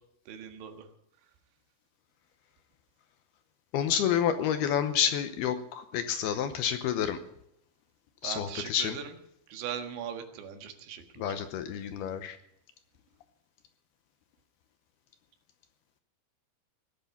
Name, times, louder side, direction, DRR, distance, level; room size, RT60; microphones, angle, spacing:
voice 1, 0.3-0.9 8.2-9.2 9.5-11.4, right 8 dB, 80° right, 6 dB, 3.9 m, -40 dB
voice 2, 3.7-7.2 8.2-9.0 11.2-12.4, left 9 dB, 75° left, 9 dB, 2.5 m, -29 dB
19.0 x 8.2 x 8.4 m, 0.76 s
omnidirectional pair, 5.2 m